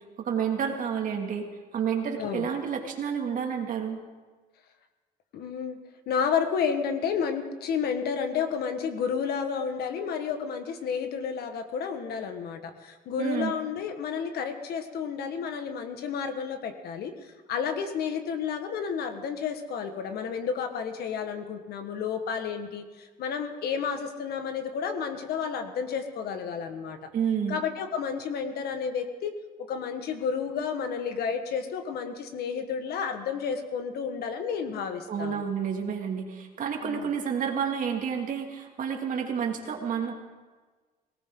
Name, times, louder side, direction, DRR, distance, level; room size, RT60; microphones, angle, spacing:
voice 1, 0.2-1.4 1.7-4.0 13.2-13.5 27.1-27.6 35.1-40.1, right 7 dB, 50° right, 2 dB, 2.4 m, -30 dB
voice 2, 5.3-5.8 6.1-17.1 17.5-27.1 27.5-29.3 29.7-35.4 36.8-37.1, left 6 dB, 70° left, 7 dB, 1.6 m, -31 dB
19.0 x 18.0 x 3.9 m, 1.4 s
cardioid pair, 110°, 17 cm